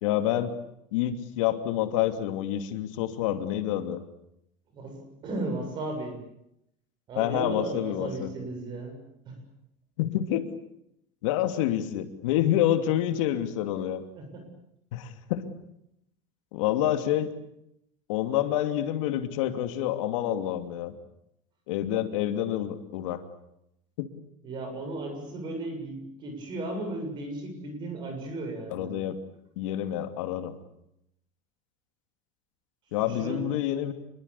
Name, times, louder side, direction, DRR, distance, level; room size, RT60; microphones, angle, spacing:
voice 1, 0.0-0.5 0.9-4.0 7.2-8.3 10.0-10.5 11.2-14.0 14.9-15.5 16.5-17.3 18.1-20.9 21.7-23.2 24.0-24.1 28.7-29.2 29.6-30.6 32.9-33.9, left 12 dB, 75° left, 8 dB, 2.8 m, -28 dB
voice 2, 4.7-6.2 7.1-9.0 9.2-9.4 14.1-14.5 24.4-28.9 33.0-33.4, right 2 dB, 25° right, 5 dB, 7.5 m, -35 dB
27.5 x 22.5 x 8.5 m, 0.79 s
cardioid pair, 180°, 17 cm